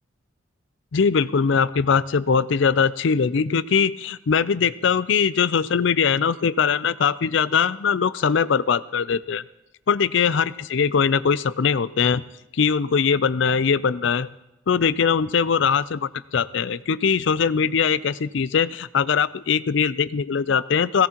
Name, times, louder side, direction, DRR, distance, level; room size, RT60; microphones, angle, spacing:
voice 1, 0.9-9.4 9.9-12.2 12.5-14.3 14.7-21.1, left 6 dB, 60° left, 17 dB, 0.4 m, -21 dB
18.0 x 16.5 x 3.0 m, 0.94 s
head